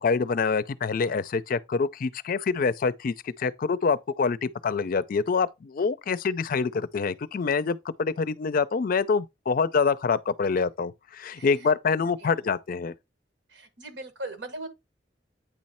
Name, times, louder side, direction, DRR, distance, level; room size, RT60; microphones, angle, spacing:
voice 1, 0.0-12.9, left 5 dB, 50° left, 0.4 m, -26 dB
voice 2, 11.3-11.7 12.2-12.5 13.5-14.7, right 2 dB, 85° right, 1.5 m, -40 dB
9.0 x 3.1 x 4.2 m
head